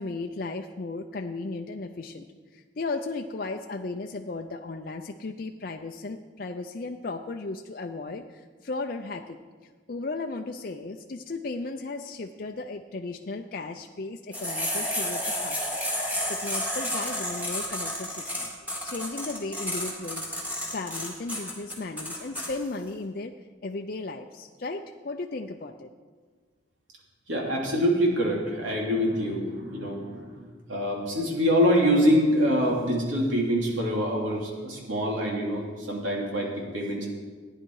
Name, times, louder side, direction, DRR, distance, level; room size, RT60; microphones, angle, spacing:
voice 1, 0.0-2.3 2.5-9.4 9.9-15.8 16.3-18.5 18.8-20.2 20.7-23.3 23.6-25.9, left 3 dB, 45° left, 3 dB, 0.5 m, -35 dB
sound 1, 14.3-22.5, left 1 dB, 10° right, 2.3 m, -31 dB
voice 2, 27.3-37.1, equal, 85° right, -2 dB, 3.0 m, -25 dB
15.5 x 10.0 x 4.7 m, 1.5 s
head